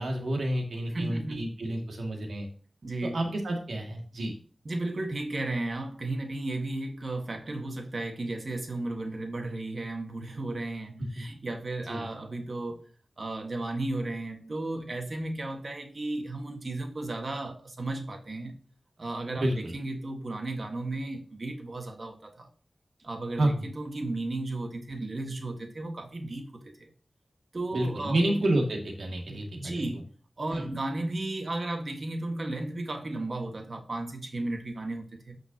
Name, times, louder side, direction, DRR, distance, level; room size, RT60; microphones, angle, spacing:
voice 1, 0.0-2.5 3.1-4.4 11.9-12.0 19.4-19.7 23.4-23.5 27.7-29.8 30.5-30.6, right 1 dB, 85° right, 2.2 m, -29 dB
voice 2, 0.9-1.4 2.8-3.2 4.6-12.9 13.2-18.5 19.0-22.5 23.0-26.9 27.5-28.5 29.3-30.1 30.4-35.4, right 2 dB, 50° right, 1.6 m, -34 dB
9.4 x 5.8 x 2.9 m
wide cardioid pair, 70°, 0 cm